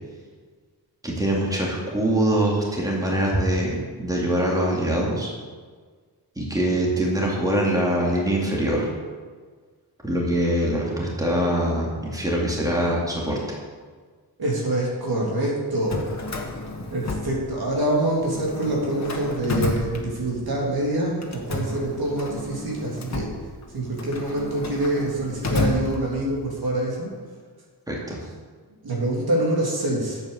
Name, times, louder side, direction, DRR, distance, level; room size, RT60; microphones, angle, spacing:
voice 1, 1.0-5.3 6.4-8.9 10.0-13.4 27.9-28.2, right 1 dB, 10° right, -3 dB, 2.5 m, -23 dB
voice 2, 14.4-16.1 16.9-23.3 23.7-27.1 28.8-30.2, right 1 dB, 70° right, -3 dB, 3.2 m, -25 dB
Drawer open or close, 15.7-17.9 18.2-20.6 21.2-26.5, left 2 dB, 45° left, 1.5 m, -31 dB
9.1 x 7.9 x 7.1 m, 1.5 s
wide cardioid pair, 105°, 39 cm